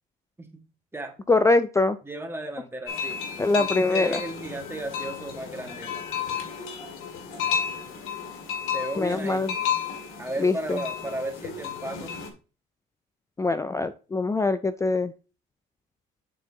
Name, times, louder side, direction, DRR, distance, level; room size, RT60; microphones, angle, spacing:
voice 1, 1.3-2.0 3.4-4.2 9.0-9.5 10.4-10.8 13.4-15.1, left 3 dB, 15° left, 12 dB, 0.4 m, -23 dB
voice 2, 2.0-3.2 3.6-5.9 8.7-9.4 10.2-12.2, right 1 dB, 10° right, 3 dB, 1.7 m, -34 dB
sound 1, 2.9-12.3, left 7 dB, 75° left, 2.2 m, -32 dB
10.5 x 4.3 x 2.8 m, 0.34 s
supercardioid pair, 85°, 21 cm